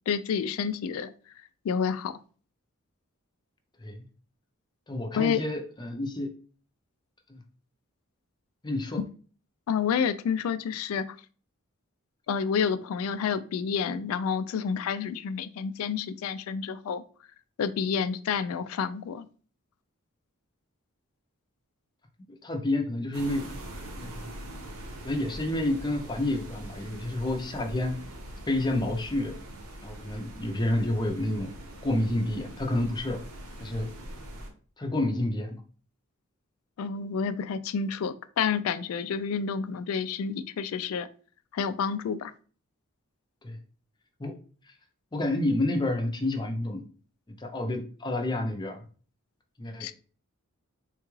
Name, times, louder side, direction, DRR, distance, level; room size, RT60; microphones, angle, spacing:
voice 1, 0.1-1.1 1.6-2.1 5.1-5.4 9.7-11.1 12.3-17.0 17.6-19.3 36.8-41.1 41.5-42.3 49.8-49.9, left 6 dB, 75° left, 13 dB, 0.3 m, -29 dB
voice 2, 4.9-6.3 7.3-7.4 8.6-9.0 22.4-23.5 24.0-24.2 25.0-27.9 28.5-29.4 29.8-31.5 31.8-33.2 33.6-33.9 34.8-35.6 43.4-43.6 44.2-44.3 45.1-46.8 47.4-48.8 49.6-49.9, left 1 dB, 20° left, 4 dB, 0.5 m, -29 dB
sound 1, 23.1-34.5, right 1 dB, 90° right, 0.9 m, -43 dB
3.7 x 2.3 x 3.0 m, 0.40 s
head